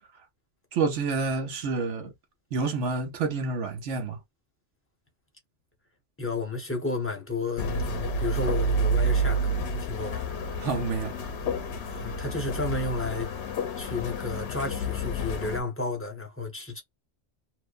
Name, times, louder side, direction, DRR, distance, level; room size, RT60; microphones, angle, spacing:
voice 1, 0.7-2.1 2.5-4.2 10.6-11.2, right 4 dB, 85° right, 1.1 m, -28 dB
voice 2, 6.2-10.3 11.9-13.5 13.8-16.8, left 3 dB, 15° left, 0.6 m, -32 dB
sound 1, 7.6-15.6, right 1 dB, 70° left, 0.9 m, -29 dB
2.6 x 2.1 x 2.4 m
omnidirectional pair, 1.2 m